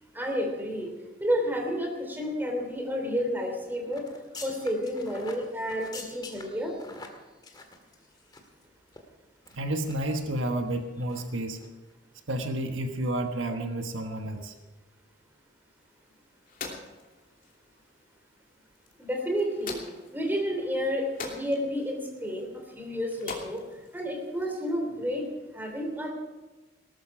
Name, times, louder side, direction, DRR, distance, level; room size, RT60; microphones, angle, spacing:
voice 1, 0.1-0.9 1.2-4.1 4.4-6.7 19.0-19.8 20.1-22.5 22.7-23.6 23.9-25.2 25.5-26.1, equal, 10° right, 2 dB, 3.2 m, -30 dB
sound 1, 3.9-8.6 8.9-9.0 9.5-10.2 10.6-10.8 11.1-11.3 11.6-11.7, left 3 dB, 20° left, 1.9 m, -46 dB
voice 2, 9.5-11.6 12.3-14.5, right 1 dB, 70° right, 5 dB, 1.4 m, -30 dB
sound 2, 15.8-24.8, left 3 dB, 45° left, 2.8 m, -45 dB
18.5 x 13.5 x 4.8 m, 1.2 s
head